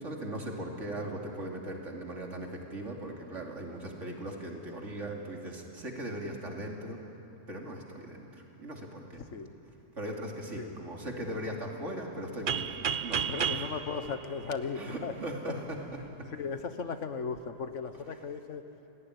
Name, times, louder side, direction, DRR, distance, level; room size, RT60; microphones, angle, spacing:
voice 1, 0.0-7.0 7.5-9.2 10.0-13.6 14.8-16.3, right 1 dB, 75° right, 0 dB, 3.3 m, -39 dB
sound 1, 12.5-15.2, right 7 dB, 50° right, 0.8 m, -33 dB
voice 2, 13.3-15.1 16.3-18.6, left 5 dB, 75° left, 9 dB, 1.6 m, -36 dB
28.0 x 18.5 x 10.0 m, 2.9 s
omnidirectional pair, 1.3 m